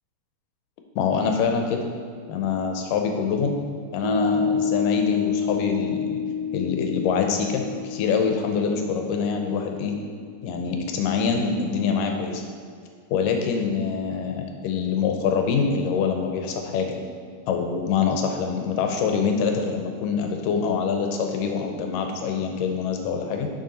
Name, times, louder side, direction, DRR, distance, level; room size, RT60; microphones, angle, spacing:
voice 1, 1.0-1.8 2.3-3.6 3.9-6.2 6.5-10.0 10.4-12.4 13.1-17.0 17.5-23.5, left 5 dB, 85° left, 4 dB, 2.3 m, -25 dB
Piano, 4.0-10.8, left 6 dB, 70° right, 1.5 m, -29 dB
6.4 x 6.1 x 4.1 m, 2.2 s
omnidirectional pair, 3.8 m